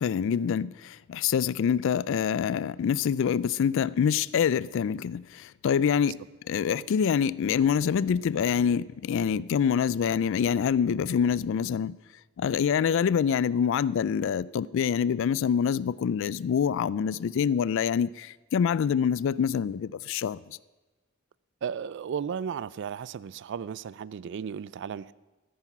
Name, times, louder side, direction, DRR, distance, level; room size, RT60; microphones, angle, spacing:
voice 1, 0.0-6.2 6.5-12.0 12.4-20.4, left 7 dB, 65° left, 0.3 m, -26 dB
voice 2, 21.6-25.1, right 7 dB, 60° right, 0.3 m, -34 dB
13.5 x 9.8 x 6.0 m
head